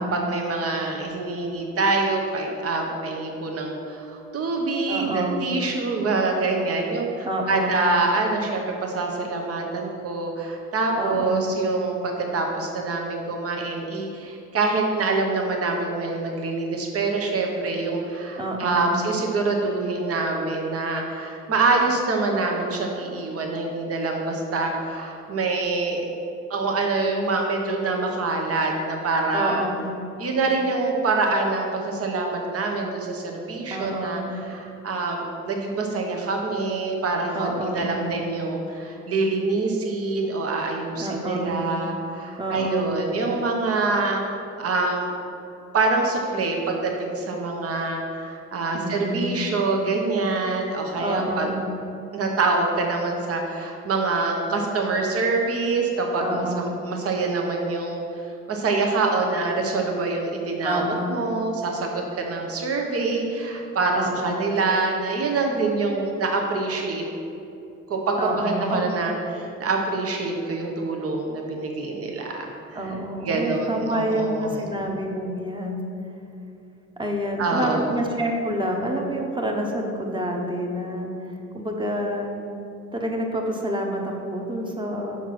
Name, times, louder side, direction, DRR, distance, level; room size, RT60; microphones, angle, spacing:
voice 1, 0.0-26.0 26.5-29.7 30.2-44.2 44.6-45.1 45.7-51.5 52.1-58.0 58.5-67.0 67.9-72.8 73.2-74.5 77.4-78.0, right 3 dB, 50° right, 1 dB, 1.1 m, -25 dB
voice 2, 4.9-5.4 7.2-7.8 11.0-11.5 18.4-19.0 29.3-29.9 33.7-34.3 37.3-37.9 41.0-41.6 42.4-42.9 48.7-49.3 50.9-51.7 56.2-56.7 60.6-61.1 63.9-64.5 68.2-68.9 72.7-75.8 77.0-81.1 81.5-82.3 82.9-85.2, right 1 dB, 15° right, 1 dB, 1.1 m, -28 dB
6.2 x 4.4 x 5.9 m, 2.7 s
cardioid pair, 90°, 30 cm